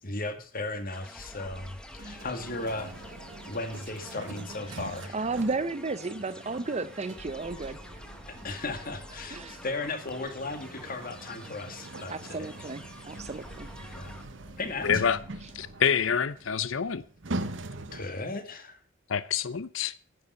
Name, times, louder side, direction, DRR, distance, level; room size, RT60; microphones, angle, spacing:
voice 1, 0.0-2.9 3.5-5.2 8.4-12.7 13.9-14.2 14.6-15.0 17.9-18.8, left 2 dB, 50° left, 2.0 m, -36 dB
sound 1, 0.9-14.2, left 1 dB, 5° left, 1.3 m, -49 dB
sound 2, 1.1-5.7 7.1-11.5 13.1-17.7, equal, 20° left, 1.8 m, -52 dB
sound 3, 1.9-18.3, right 2 dB, 70° right, 1.0 m, -43 dB
voice 2, 5.1-7.8 9.3-9.6 12.1-13.7, right 3 dB, 35° right, 0.6 m, -33 dB
voice 3, 14.8-15.2 15.5-17.0 19.1-19.9, left 7 dB, 90° left, 0.6 m, -27 dB
10.5 x 6.8 x 8.0 m
head